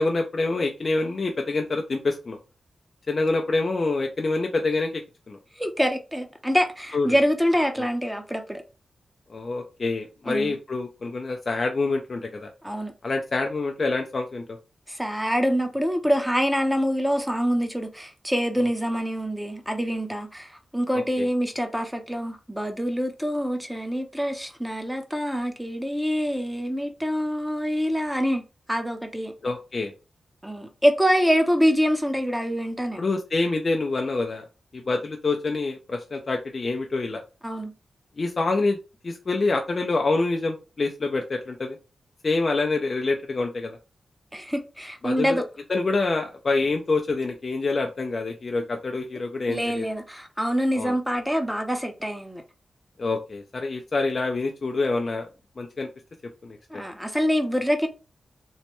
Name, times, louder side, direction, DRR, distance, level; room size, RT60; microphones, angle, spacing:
voice 1, 0.0-2.4 3.1-5.0 5.3-5.4 6.9-7.1 7.8-7.9 9.3-12.5 13.0-14.6 18.6-18.7 20.9-21.3 29.4-29.9 33.0-34.4 34.7-37.2 38.2-38.8 39.0-41.8 42.2-43.8 45.0-45.4 45.7-49.8 50.8-50.9 53.0-55.3 55.6-55.9 56.4-56.6, left 3 dB, 55° left, 0.5 m, -26 dB
voice 2, 5.6-8.6 10.3-10.5 12.6-12.9 14.9-28.4 28.7-29.3 30.4-33.0 37.4-37.7 44.3-45.4 49.5-52.4 56.7-57.9, equal, 5° right, 0.7 m, -25 dB
3.1 x 2.1 x 3.0 m
cardioid pair, 50°, 0 cm